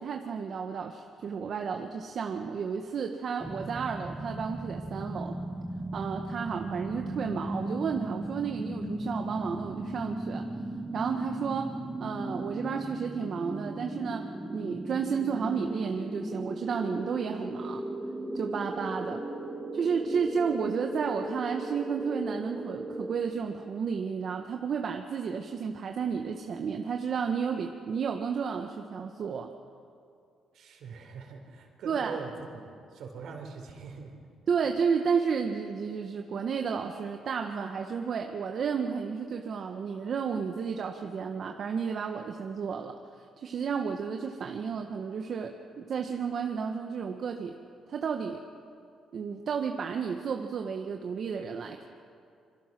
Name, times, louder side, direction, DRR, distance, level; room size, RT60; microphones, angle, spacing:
voice 1, 0.0-5.4 5.9-10.4 10.9-11.7 12.0-14.2 14.5-17.8 18.3-19.2 19.7-29.5 31.8-32.2 34.5-43.0 43.4-47.6 47.9-48.4 49.1-51.8, right 6 dB, 55° right, 3 dB, 1.5 m, -32 dB
sound 1, 3.4-23.2, right 1 dB, 15° right, 2.7 m, -37 dB
voice 2, 30.5-34.1, right 5 dB, 75° right, 3 dB, 4.5 m, -43 dB
26.5 x 24.5 x 6.2 m, 2.4 s
cardioid pair, 90°, 0 cm